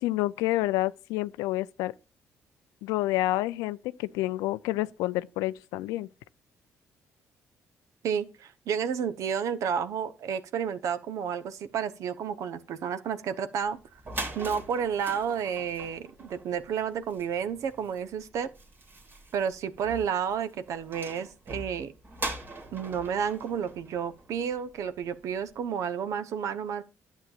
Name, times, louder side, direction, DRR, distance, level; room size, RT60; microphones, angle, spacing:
voice 1, 0.0-1.9 2.8-6.1, left 17 dB, 90° left, 0.4 m, -29 dB
voice 2, 8.0-13.8 14.3-18.5 19.3-21.9 22.7-26.8, right 7 dB, 70° right, 0.9 m, -31 dB
sound 1, 13.7-13.8 13.9-24.7, right 2 dB, 40° right, 2.5 m, -42 dB
11.0 x 7.3 x 2.4 m
supercardioid pair, 70°, 6 cm